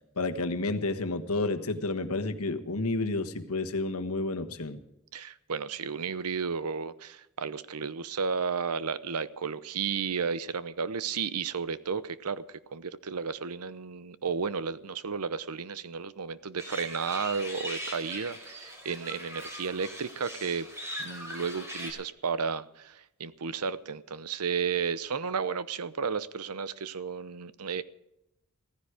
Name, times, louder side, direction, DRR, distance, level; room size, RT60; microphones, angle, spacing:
voice 1, 0.2-4.8, left 2 dB, 75° left, 7 dB, 1.4 m, -30 dB
voice 2, 5.1-20.7 21.0-27.8, right 5 dB, 85° right, 15 dB, 0.8 m, -33 dB
sound 1, 16.6-21.9, equal, 10° right, 4.6 m, -40 dB
16.0 x 15.0 x 5.0 m, 0.86 s
head